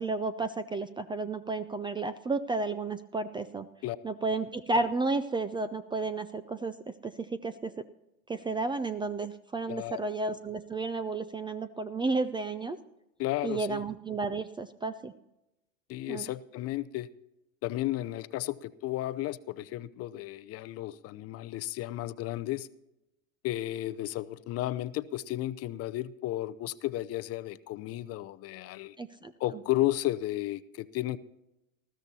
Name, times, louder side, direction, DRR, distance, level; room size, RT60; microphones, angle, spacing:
voice 1, 0.0-3.7 4.0-6.8 7.0-7.7 8.3-12.8 13.4-15.1 16.1-16.3 29.0-29.3, right 3 dB, 10° right, 13 dB, 0.4 m, -32 dB
voice 2, 9.7-10.0 13.2-13.8 15.9-17.1 17.6-22.7 23.4-29.0 29.4-31.2, left 15 dB, 35° left, 14 dB, 0.6 m, -33 dB
20.0 x 14.5 x 2.8 m, 0.91 s
hypercardioid pair, 90°, 41 cm